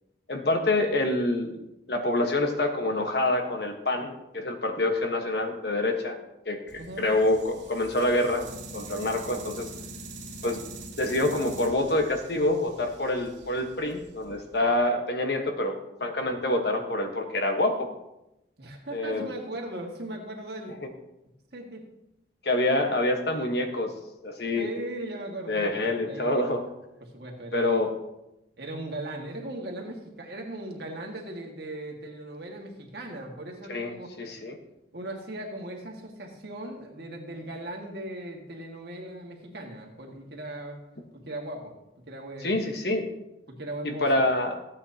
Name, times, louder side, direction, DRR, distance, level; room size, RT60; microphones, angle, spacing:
voice 1, 0.3-1.6 1.9-6.2 6.5-8.5 8.7-9.7 10.4-10.6 11.0-17.9 18.9-19.3 22.4-23.9 24.2-24.7 25.5-26.6 27.5-27.9 33.7-34.5 42.4-43.0 43.8-44.5, left 2 dB, 60° left, 4 dB, 1.3 m, -26 dB
sound 1, 6.7-14.8, right 2 dB, 80° right, 2.4 m, -44 dB
voice 2, 6.8-7.1 18.6-20.7 21.5-21.8 24.6-25.7 26.0-26.4 27.0-27.8 28.6-34.1 34.9-40.8 41.1-41.7 42.1-42.5 43.5-44.1, right 1 dB, 60° right, 1 dB, 1.7 m, -38 dB
14.5 x 8.9 x 2.8 m, 0.90 s
head